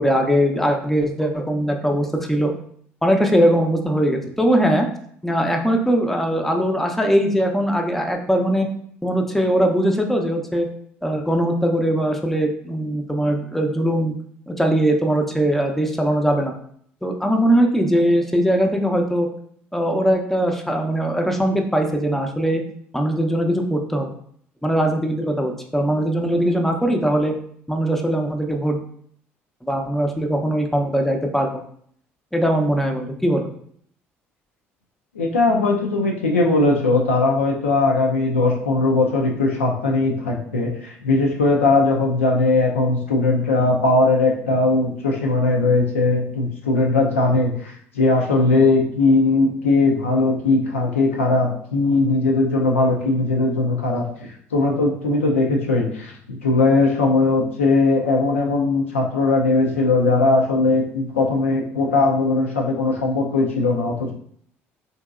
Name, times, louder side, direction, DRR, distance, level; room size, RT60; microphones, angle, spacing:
voice 1, 0.0-2.5 3.0-4.9 5.2-8.7 9.0-10.7 11.0-14.1 14.5-16.5 17.0-19.3 19.7-22.6 22.9-24.1 24.6-27.3 27.7-28.8 29.6-31.6 32.3-33.5, equal, 5° left, 3 dB, 0.5 m, -20 dB
voice 2, 35.1-64.1, left 3 dB, 90° left, 0 dB, 0.4 m, -19 dB
2.9 x 2.7 x 2.3 m, 0.63 s
hypercardioid pair, 55°, 7 cm